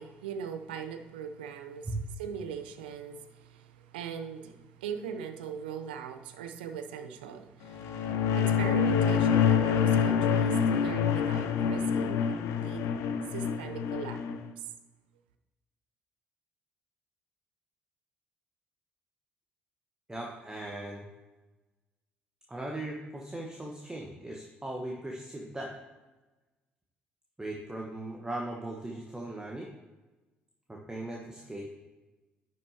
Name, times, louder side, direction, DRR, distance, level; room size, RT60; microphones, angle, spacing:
voice 1, 0.0-1.9 2.2-12.9 13.3-14.2 14.6-14.7, right 7 dB, 75° right, 8 dB, 0.5 m, -40 dB
sound 1, 7.7-14.4, left 7 dB, 60° left, 0.6 m, -26 dB
voice 2, 20.1-21.0 22.5-25.7 27.4-29.7 30.7-31.6, right 1 dB, 15° right, -1 dB, 1.2 m, -38 dB
10.5 x 6.4 x 2.8 m, 1.2 s
figure-of-eight pair, 50°, 5 cm